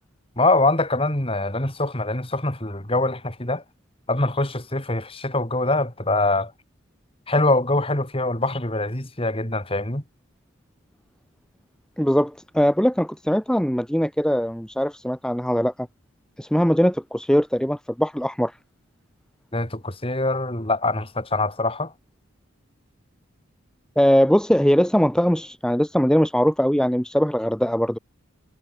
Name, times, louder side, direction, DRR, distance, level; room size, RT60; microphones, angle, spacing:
voice 1, 0.4-3.6 4.1-6.5 7.3-10.0 19.5-21.9, left 2 dB, 25° left, 4.2 m, -23 dB
voice 2, 12.0-15.7 16.4-18.5 24.0-28.0, equal, 5° left, 1.3 m, -21 dB
head